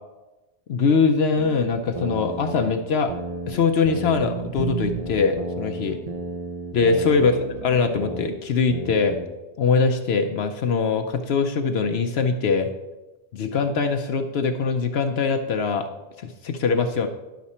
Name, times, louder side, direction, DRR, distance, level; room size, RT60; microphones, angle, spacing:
voice 1, 0.7-3.1 3.5-6.0 6.7-9.2 9.6-12.7 13.3-15.9 16.2-17.1, left 4 dB, 70° left, 6 dB, 0.9 m, -22 dB
sound 1, 1.3-3.6 3.8-8.3 8.7-9.3, right 3 dB, 40° right, 0.7 m, -32 dB
10.5 x 6.0 x 4.2 m, 1.1 s
omnidirectional pair, 1.2 m